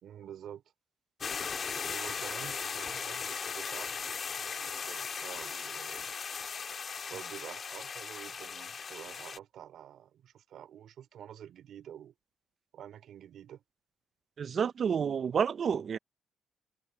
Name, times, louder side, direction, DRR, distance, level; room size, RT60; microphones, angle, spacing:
voice 1, 0.0-0.6 1.8-6.1 7.1-12.1 12.7-13.6, right 10 dB, 70° right, 2.8 m, -48 dB
sound 1, 1.2-9.4, left 6 dB, 45° left, 1.9 m, -38 dB
voice 2, 14.4-16.0, right 7 dB, 50° right, 0.5 m, -29 dB
cardioid pair, 90°, 0 cm